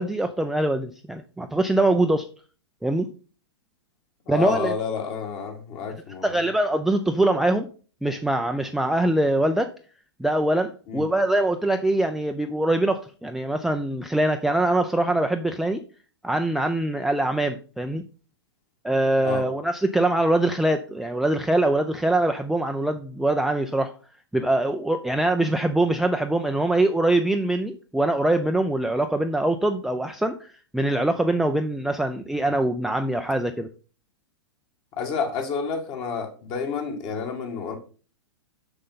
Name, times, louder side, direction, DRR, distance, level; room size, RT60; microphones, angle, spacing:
voice 1, 0.0-2.3 2.8-3.1 4.3-4.7 6.2-7.7 8.0-9.7 10.2-15.8 16.2-18.0 18.8-23.9 24.3-33.7, right 1 dB, ahead, 0.4 m, -23 dB
voice 2, 4.3-6.4 10.9-11.1 19.2-19.4 35.0-37.8, left 6 dB, 35° left, 2.1 m, -29 dB
6.6 x 6.4 x 4.0 m
figure-of-eight pair, 110°, 14 cm